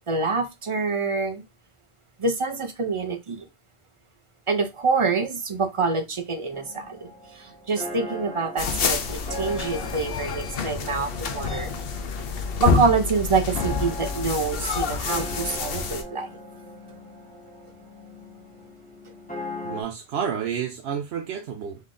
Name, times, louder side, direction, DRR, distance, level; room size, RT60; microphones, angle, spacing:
voice 1, 0.1-1.4 2.2-3.5 4.5-11.8 12.6-16.3, right 4 dB, 35° right, 0.6 m, -26 dB
sound 1, 6.5-19.8, left 1 dB, 10° left, 1.0 m, -39 dB
sound 2, 8.6-16.0, left 5 dB, 60° left, 0.9 m, -28 dB
voice 2, 19.6-21.8, right 7 dB, 70° right, 0.9 m, -30 dB
3.8 x 3.2 x 3.7 m
omnidirectional pair, 1.1 m